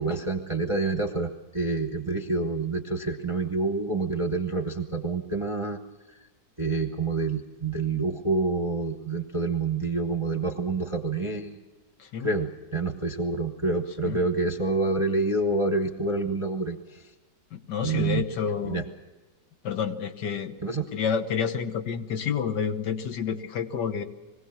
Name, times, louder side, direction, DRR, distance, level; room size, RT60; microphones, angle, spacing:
voice 1, 0.0-5.8 6.1-6.2 6.6-11.6 12.2-17.1 17.8-18.2 18.6-18.8 20.6-20.8, right 3 dB, 25° right, 5 dB, 0.8 m, -27 dB
voice 2, 12.0-12.3 14.1-14.2 17.5-18.9 19.6-20.5 20.9-24.0, left 7 dB, 75° left, 8 dB, 1.7 m, -29 dB
22.0 x 16.5 x 7.2 m, 1.2 s
omnidirectional pair, 1.9 m